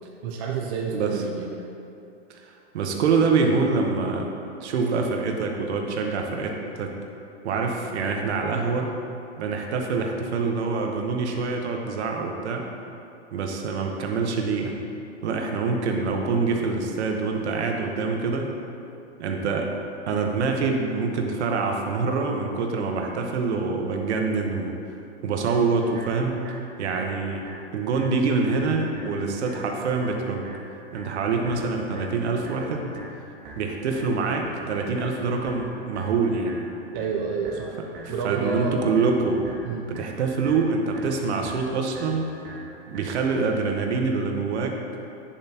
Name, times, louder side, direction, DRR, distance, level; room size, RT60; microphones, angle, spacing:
voice 1, 0.2-1.5 36.9-37.8 38.1-38.8 39.6-39.9, right 5 dB, 25° right, 0 dB, 0.3 m, -29 dB
voice 2, 0.9-1.2 2.3-4.3 4.6-6.9 7.4-8.9 9.4-12.7 13.3-14.8 15.2-18.5 19.2-19.7 20.1-24.8 25.2-26.4 26.8-27.4 27.7-30.5 30.9-33.0 33.6-36.6 38.0-39.4 39.7-42.3 42.9-44.8, right 4 dB, 75° right, 2 dB, 1.1 m, -25 dB
sound 1, 25.4-43.4, right 2 dB, 50° right, 1.8 m, -44 dB
9.5 x 7.2 x 2.8 m, 2.7 s
hypercardioid pair, 145°, 34 cm